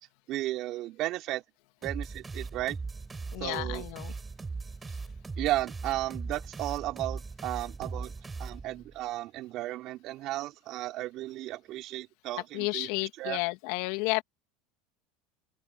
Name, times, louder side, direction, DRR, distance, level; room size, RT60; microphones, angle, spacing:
voice 1, 0.3-1.4 1.8-2.8 3.4-3.8 5.4-8.1 8.4-12.9 13.2-13.4, right 16 dB, 55° right, 4.2 m, -34 dB
sound 1, 1.8-9.0, right 4 dB, 20° right, 5.6 m, -39 dB
voice 2, 3.3-4.1 12.5-14.2, left 25 dB, 65° left, 2.5 m, -31 dB
open air
hypercardioid pair, 95°, 0 cm